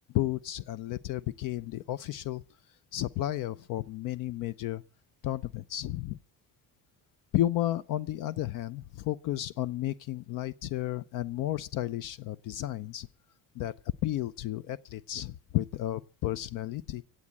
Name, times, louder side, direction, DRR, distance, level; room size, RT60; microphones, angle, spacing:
voice 1, 0.1-2.4 2.9-4.8 5.2-6.2 7.3-13.1 13.6-13.7 14.0-17.0, left 14 dB, 60° left, 0.7 m, -32 dB
16.0 x 8.7 x 9.6 m
cardioid pair, 175°, 36 cm